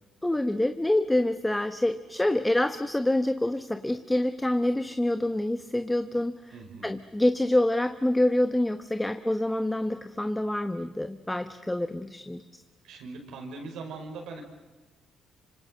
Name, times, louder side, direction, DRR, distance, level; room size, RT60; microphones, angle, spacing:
voice 1, 0.2-6.3 6.8-12.4, left 1 dB, 10° left, 9 dB, 1.1 m, -26 dB
voice 2, 6.5-7.0 12.8-14.4, right 3 dB, 85° right, 2 dB, 5.5 m, -40 dB
26.0 x 25.5 x 7.8 m, 1.2 s
cardioid pair, 90°, 0 cm